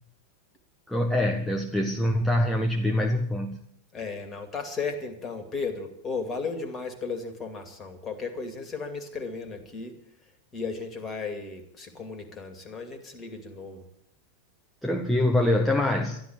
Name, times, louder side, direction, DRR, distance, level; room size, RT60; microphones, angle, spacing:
voice 1, 0.9-3.6 14.8-16.2, left 1 dB, ahead, 2 dB, 1.0 m, -24 dB
voice 2, 3.9-10.0 10.5-13.8, left 4 dB, 25° left, 8 dB, 2.5 m, -35 dB
13.0 x 11.5 x 8.7 m, 0.72 s
figure-of-eight pair, 90°, 0 cm